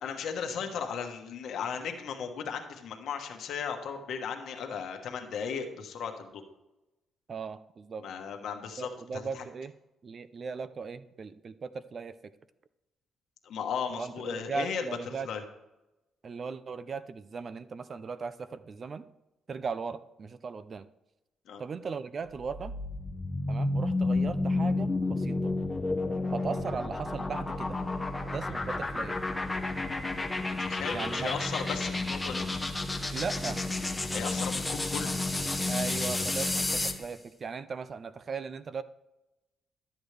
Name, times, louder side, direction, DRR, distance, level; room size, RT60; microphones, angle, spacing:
voice 1, 0.0-6.4 8.0-9.4 13.4-15.4 21.5-21.6 30.7-32.4 34.1-35.2, left 6 dB, 70° left, 4 dB, 1.2 m, -36 dB
voice 2, 7.3-8.0 8.8-9.7 10.0-12.3 13.9-15.3 16.2-19.0 19.5-20.9 21.6-22.7 23.5-25.5 26.3-27.8 28.3-29.2 30.9-31.3 33.1-33.6 35.7-38.8, right 5 dB, 45° right, 14 dB, 0.5 m, -38 dB
sound 1, 22.3-37.1, left 2 dB, 15° left, 0.9 m, -31 dB
12.5 x 7.9 x 3.3 m, 0.96 s
cardioid pair, 90°, 0 cm